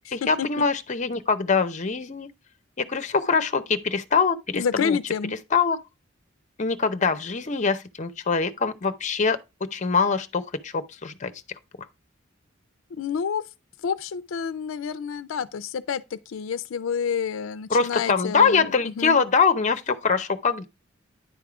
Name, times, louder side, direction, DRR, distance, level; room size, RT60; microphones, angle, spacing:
voice 1, 0.1-2.3 2.8-5.0 5.5-5.8 6.6-9.4 9.7-11.3 17.7-20.7, left 5 dB, 35° left, 0.6 m, -23 dB
voice 2, 4.5-5.3 12.9-13.4 13.8-19.2, left 7 dB, 80° left, 0.4 m, -29 dB
10.0 x 3.6 x 4.8 m
head